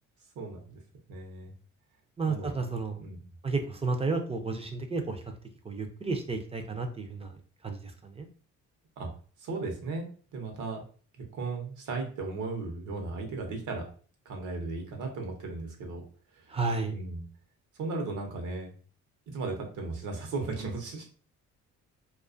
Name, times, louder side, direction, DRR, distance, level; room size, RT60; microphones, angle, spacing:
voice 1, 0.4-0.8 1.1-1.5 2.2-2.5 3.0-3.2 9.0-9.1 9.4-10.8 11.2-13.9 14.3-16.0 16.3-16.5 16.9-17.2 17.8-18.7 19.3-21.0, right 3 dB, 80° right, 2 dB, 0.8 m, -36 dB
voice 2, 2.2-3.0 3.4-5.3 5.6-7.4 7.6-8.3 16.5-17.0, right 3 dB, 20° right, 5 dB, 0.4 m, -32 dB
2.3 x 2.3 x 2.4 m, 0.41 s
cardioid pair, 90°, 30 cm